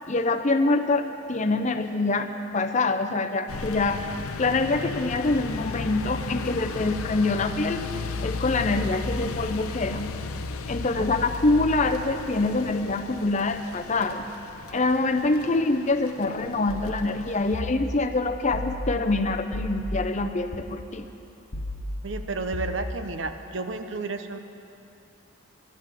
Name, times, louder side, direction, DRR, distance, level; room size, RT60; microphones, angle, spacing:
voice 1, 0.1-4.0 4.4-7.9 8.2-10.1 10.7-14.3 14.7-21.1, left 3 dB, 35° left, 7 dB, 0.6 m, -25 dB
sound 1, 3.5-17.6, left 4 dB, 80° left, 0.6 m, -35 dB
sound 2, 16.7-20.6 21.5-22.8, left 1 dB, 50° left, 1.1 m, -35 dB
voice 2, 22.0-24.4, right 3 dB, 55° right, 8 dB, 0.8 m, -32 dB
11.5 x 11.0 x 8.2 m, 2.7 s
head